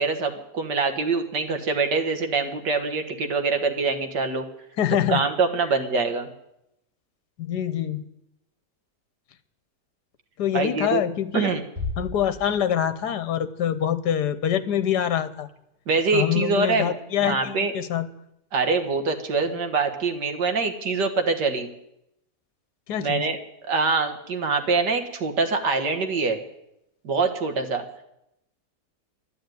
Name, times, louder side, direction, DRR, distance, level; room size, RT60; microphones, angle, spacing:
voice 1, 0.0-4.5 5.1-6.3 10.5-11.0 11.3-11.6 15.9-17.0 17.2-17.7 18.5-21.7 23.0-23.4 23.6-26.4 27.0-27.8, right 4 dB, 80° right, 6 dB, 2.2 m, -24 dB
voice 2, 4.8-5.2 7.4-8.0 10.4-11.6 12.0-15.5 16.1-18.1 22.9-23.2, left 10 dB, 75° left, 13 dB, 1.5 m, -25 dB
Bass drum, 11.8-13.2, left 2 dB, 15° right, 4.4 m, -34 dB
12.0 x 11.5 x 9.2 m, 0.83 s
omnidirectional pair, 1.8 m